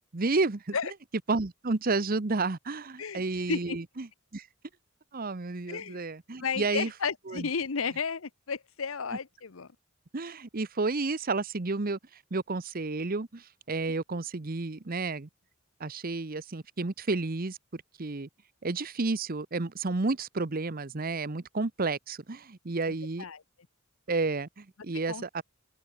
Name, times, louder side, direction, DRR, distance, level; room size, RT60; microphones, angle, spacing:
voice 1, 0.1-0.8 1.3-4.1 4.3-4.5 5.1-6.9 7.3-7.5 10.1-12.0 12.3-15.3 15.8-18.3 18.6-23.2 24.1-25.4, right 3 dB, 45° right, 0.9 m, -31 dB
voice 2, 5.7-6.0 6.4-9.7 22.8-23.4 25.1-25.4, left 5 dB, 75° left, 0.9 m, -33 dB
open air
head